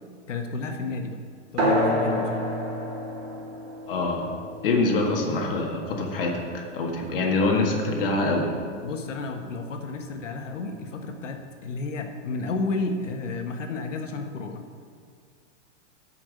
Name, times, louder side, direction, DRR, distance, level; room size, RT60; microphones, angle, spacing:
voice 1, 0.3-1.2 1.5-2.3 8.8-14.6, left 3 dB, 85° left, 4 dB, 1.5 m, -32 dB
sound 1, 1.6-6.6, equal, 55° right, 2.8 m, -29 dB
voice 2, 3.9-4.3 4.6-8.5, left 2 dB, 50° left, 1 dB, 1.7 m, -25 dB
11.0 x 5.9 x 6.5 m, 2.2 s
supercardioid pair, 180°, 36 cm